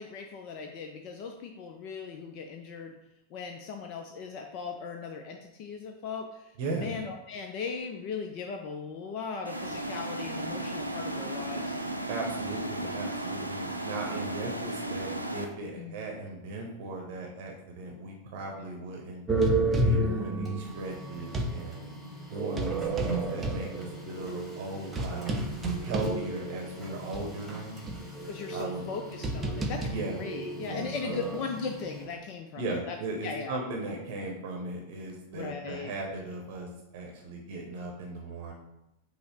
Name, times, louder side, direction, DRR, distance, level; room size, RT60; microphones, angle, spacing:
voice 1, 0.0-2.9 3.3-11.7 15.8-16.1 28.2-33.0 33.2-33.6 35.3-35.9, left 5 dB, 40° left, 4 dB, 0.4 m, -38 dB
voice 2, 6.6-6.9 12.1-19.2 19.8-21.8 22.3-25.3 25.8-27.8 28.5-28.9 29.8-30.2 30.6-31.2 32.6-38.5, right 2 dB, 50° right, 0 dB, 0.8 m, -37 dB
sound 1, 9.5-15.5, right 1 dB, 85° right, 0.4 m, -35 dB
sound 2, 19.3-21.6 22.3-26.7 27.1-27.2 27.9-31.4, right 2 dB, 20° right, 0.5 m, -31 dB
Printer, 20.3-32.3, right 2 dB, ahead, 1.4 m, -42 dB
5.4 x 2.0 x 4.2 m, 0.89 s
figure-of-eight pair, 90°, 0 cm